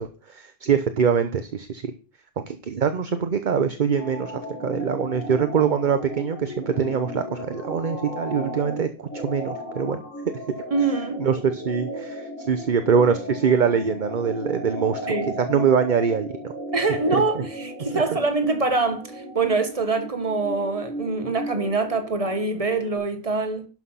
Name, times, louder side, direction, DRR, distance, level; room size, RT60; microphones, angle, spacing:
voice 1, 0.0-1.9 2.5-4.3 4.6-10.0 11.2-16.3 16.9-17.5 17.9-18.0, right 6 dB, 45° right, 0.8 m, -23 dB
sound 1, 3.9-23.0, equal, 75° left, 3.1 m, -35 dB
voice 2, 10.7-11.2 15.1-15.3 16.7-23.7, right 3 dB, 25° right, 1.4 m, -24 dB
11.5 x 6.0 x 5.7 m
omnidirectional pair, 1.3 m